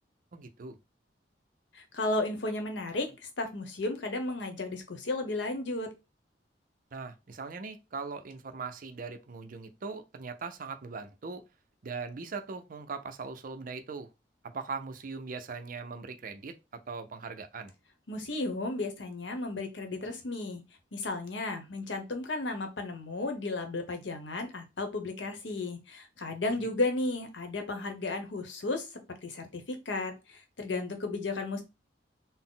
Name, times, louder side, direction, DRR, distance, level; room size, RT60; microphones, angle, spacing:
voice 1, 0.3-0.8 6.9-11.4 11.8-14.1 14.4-17.7, right 4 dB, 50° right, 0.5 m, -40 dB
voice 2, 1.7-5.9 18.1-20.6 20.9-28.9 29.2-31.6, left 2 dB, 90° left, 0.9 m, -34 dB
4.0 x 2.0 x 3.8 m
head